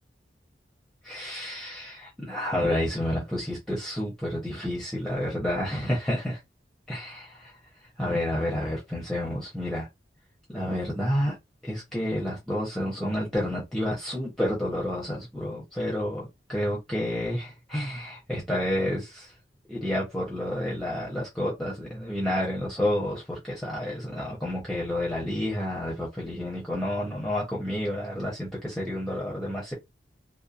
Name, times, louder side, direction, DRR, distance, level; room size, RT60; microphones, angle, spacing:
voice 1, 1.0-6.4 6.9-7.5 8.0-9.9 10.5-11.4 11.6-19.3 19.7-29.7, left 1 dB, 5° left, 0.7 m, -30 dB
2.7 x 2.1 x 2.4 m
head